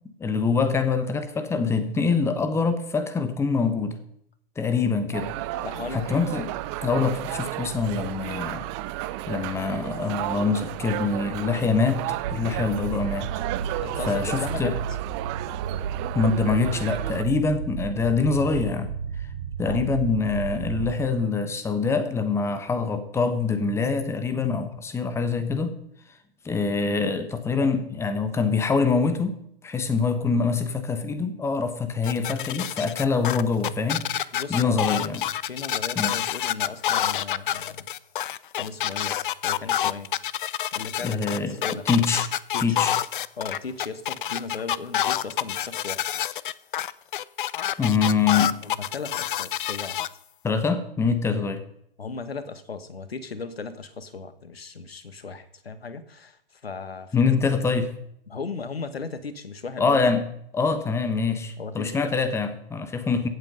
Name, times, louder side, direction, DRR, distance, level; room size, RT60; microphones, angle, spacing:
voice 1, 0.2-4.0 4.6-5.3 5.9-6.5 6.8-8.7 9.3-12.0 12.3-13.3 13.7-13.8 14.1-14.7 16.1-18.9 19.6-25.8 26.4-29.3 29.6-35.2 36.0-36.2 41.0-41.6 41.9-42.3 42.6-42.9 47.8-48.5 50.4-51.6 57.1-57.9 59.8-60.2 60.5-63.3, left 4 dB, 10° left, 10 dB, 1.1 m, -24 dB
sound 1, 5.1-17.2, right 16 dB, 30° right, 0.7 m, -33 dB
voice 2, 5.6-6.2 10.3-10.4 13.8-14.8 19.6-19.9 34.3-35.1 35.5-37.9 38.6-40.1 40.7-41.8 42.5-42.8 43.4-46.1 48.6-50.0 50.5-50.6 52.0-57.4 58.3-60.0 61.6-62.0, left 4 dB, 85° left, 12 dB, 1.4 m, -36 dB
sound 2, 12.2-21.1, right 7 dB, 60° right, 1.9 m, -33 dB
sound 3, 32.0-50.1, left 11 dB, 60° left, 0.6 m, -27 dB
15.5 x 8.1 x 5.4 m, 0.73 s
figure-of-eight pair, 120°, 30 cm